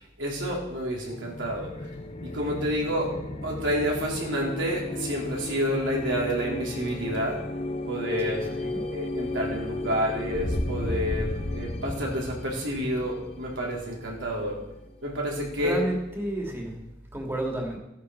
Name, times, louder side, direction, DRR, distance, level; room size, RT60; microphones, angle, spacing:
voice 1, 0.0-1.9 2.2-3.1 3.4-7.4 7.9-14.6 15.0-15.8, equal, 75° right, -2 dB, 3.8 m, -29 dB
sound 1, 1.1-14.6, left 1 dB, 30° left, 0.7 m, -34 dB
voice 2, 8.2-8.8 15.6-16.8 17.1-17.8, right 1 dB, 15° right, 0 dB, 2.5 m, -31 dB
15.5 x 10.5 x 4.7 m, 0.92 s
head